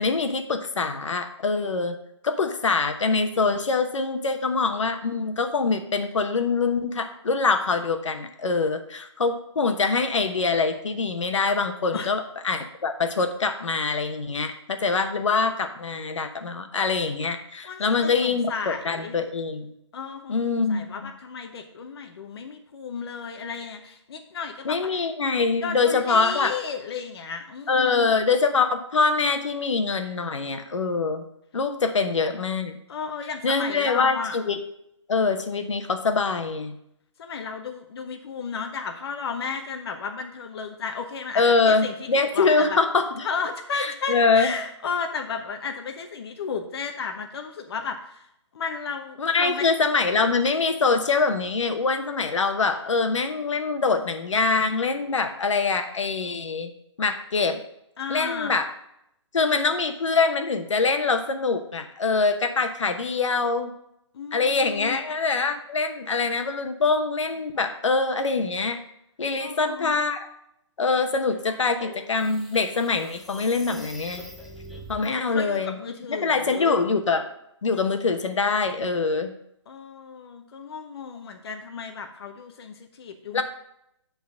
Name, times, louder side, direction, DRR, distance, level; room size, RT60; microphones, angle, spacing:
voice 1, 0.0-2.0 2.2-19.7 20.3-20.9 24.6-26.5 27.7-31.2 31.5-32.7 33.4-34.6 35.1-36.8 41.3-43.3 43.7-44.5 49.2-56.7 57.0-57.6 58.1-58.7 59.3-63.7 64.3-68.8 69.2-70.3 70.8-74.2 74.9-75.8 76.1-77.3 77.6-79.3 83.3-83.4, left 4 dB, 85° left, 7 dB, 1.0 m, -24 dB
voice 2, 17.6-19.2 19.9-20.4 20.7-25.0 25.6-28.1 32.9-34.4 37.2-42.8 43.2-48.3 48.5-49.7 58.0-58.5 64.1-65.0 69.4-70.0 75.0-76.7 79.7-83.4, left 5 dB, 55° left, 5 dB, 0.9 m, -34 dB
sound 1, 71.3-75.1, equal, ahead, 0.4 m, -43 dB
7.3 x 3.9 x 6.3 m, 0.78 s
hypercardioid pair, 155°, 15 cm